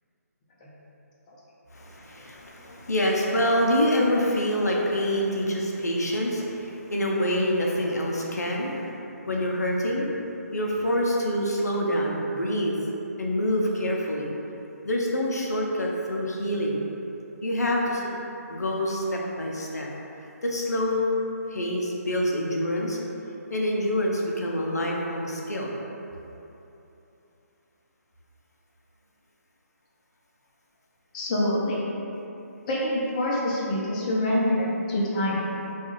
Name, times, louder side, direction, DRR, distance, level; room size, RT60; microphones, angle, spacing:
voice 1, 1.7-9.0 9.3-10.2 10.5-12.8 13.2-14.3 14.8-16.8 17.4-18.1 18.5-19.9 20.4-21.1 21.5-23.0 23.5-25.7, equal, 90° left, -2 dB, 0.4 m, -26 dB
voice 2, 31.1-31.8 32.7-35.4, left 1 dB, 30° left, -6 dB, 0.4 m, -26 dB
2.4 x 2.3 x 3.0 m, 2.9 s
figure-of-eight pair, 145°, 9 cm